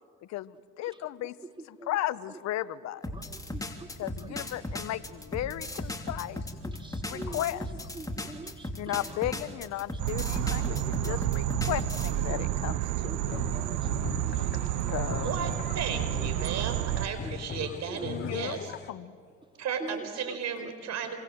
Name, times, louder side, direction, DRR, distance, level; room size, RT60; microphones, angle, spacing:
voice 1, 0.3-1.4 1.6-3.1 4.0-6.4 7.1-7.7 8.8-13.4 14.9-15.4 18.0-19.1, left 14 dB, 65° left, 17 dB, 0.9 m, -35 dB
sound 1, 3.0-12.1, left 1 dB, 10° left, 3.2 m, -36 dB
voice 2, 3.1-3.9 4.3-4.4 6.6-7.4 7.9-8.7 10.6-10.7 11.0-11.2 12.3-12.4 13.0-14.9 16.4-16.5 17.2-17.3 17.9-18.3 19.8-20.0 20.3-20.4, right 2 dB, 15° right, 6 dB, 2.7 m, -44 dB
sound 2, 10.0-17.1, right 13 dB, 85° right, 1.2 m, -30 dB
sound 3, 13.3-18.9, left 7 dB, 35° left, 1.4 m, -41 dB
voice 3, 15.2-18.7 19.6-21.2, right 7 dB, 65° right, 8 dB, 4.8 m, -34 dB
27.0 x 26.0 x 7.9 m, 2.2 s
supercardioid pair, 70°, 29 cm